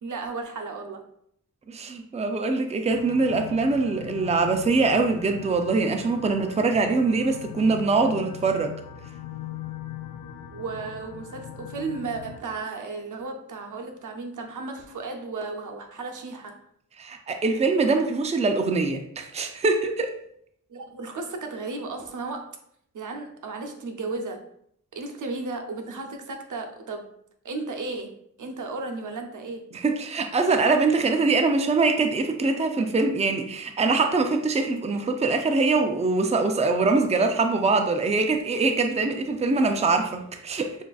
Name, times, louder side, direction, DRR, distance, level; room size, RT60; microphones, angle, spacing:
voice 1, 0.0-1.1 10.5-16.6 20.7-22.6 22.9-24.4 24.9-27.1 27.4-28.1 28.4-29.7, right 3 dB, 75° right, 4 dB, 0.7 m, -34 dB
voice 2, 1.7-8.7 17.0-20.1 29.7-40.8, right 3 dB, 20° right, 5 dB, 0.4 m, -23 dB
sound 1, 2.9-12.4, left 9 dB, 90° left, 0.5 m, -40 dB
7.0 x 2.5 x 2.4 m, 0.70 s
cardioid pair, 65°, 31 cm